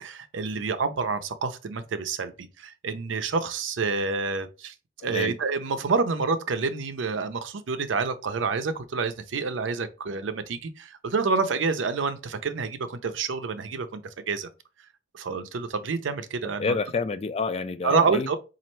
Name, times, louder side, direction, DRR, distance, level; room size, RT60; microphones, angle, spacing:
voice 1, 0.0-4.7 5.0-14.0 14.3-14.5 15.1-16.8 17.8-18.4, right 4 dB, 85° right, 0.5 m, -28 dB
voice 2, 16.4-18.3, left 4 dB, 35° left, 0.3 m, -28 dB
4.2 x 2.5 x 3.0 m
head